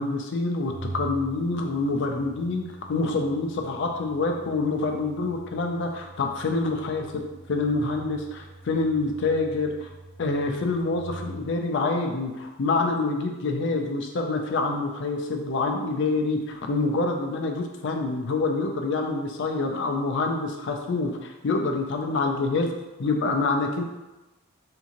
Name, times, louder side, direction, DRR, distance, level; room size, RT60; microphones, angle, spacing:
voice 1, 0.0-7.2 7.5-9.9 10.2-22.7 23.0-23.8, left 3 dB, 60° left, 3 dB, 0.4 m, -26 dB
Organ, 0.6-11.6, right 2 dB, 20° left, 1.5 m, -43 dB
3.6 x 2.6 x 2.9 m, 1.1 s
head